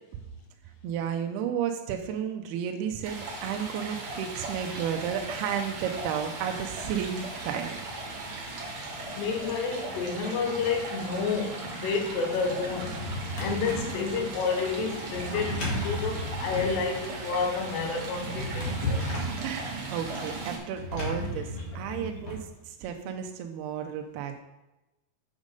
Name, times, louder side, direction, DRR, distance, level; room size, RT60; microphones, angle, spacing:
voice 1, 0.8-7.8 19.4-21.5 21.8-24.4, right 8 dB, 85° right, 4 dB, 2.3 m, -32 dB
Stream, 3.0-20.6, right 3 dB, 55° right, 2.3 m, -37 dB
voice 2, 9.1-13.0 13.4-19.0 21.2-21.3 22.0-22.1 23.0-23.2, left 5 dB, 75° left, 3 dB, 3.1 m, -30 dB
Drawer open or close, 12.6-14.0 15.1-16.8 18.1-19.4 20.7-22.4, left 1 dB, 45° left, 2.0 m, -33 dB
8.1 x 5.1 x 5.3 m, 1.0 s
omnidirectional pair, 5.2 m